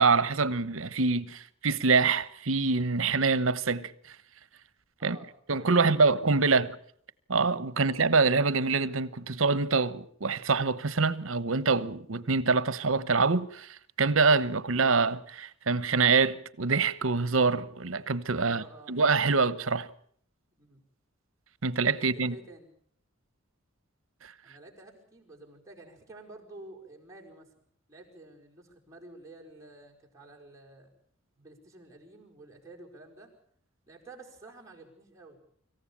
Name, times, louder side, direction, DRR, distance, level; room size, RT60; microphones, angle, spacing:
voice 1, 0.0-3.9 5.0-5.2 5.5-6.7 7.3-19.9 21.6-22.4 24.2-24.3, right 4 dB, 75° right, 1.1 m, -25 dB
voice 2, 5.0-6.7 18.4-19.0 20.6-20.8 21.9-22.7 24.4-30.9 31.4-33.3 33.9-35.4, right 2 dB, 15° right, 5.1 m, -50 dB
25.5 x 15.0 x 8.7 m
head